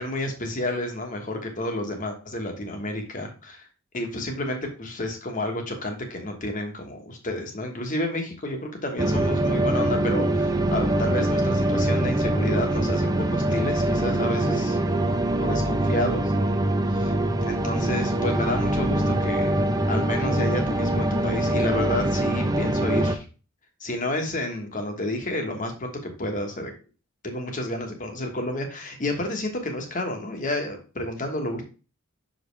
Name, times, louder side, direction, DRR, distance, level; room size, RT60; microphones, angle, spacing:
voice 1, 0.0-3.7 3.9-14.8 15.4-16.3 16.9-17.1 17.4-23.2 23.8-26.7 27.2-31.6, left 1 dB, 40° left, 3 dB, 1.3 m, -30 dB
sound 1, 9.0-23.2, right 1 dB, 20° right, 0.6 m, -23 dB
5.9 x 5.2 x 3.2 m, 0.34 s
head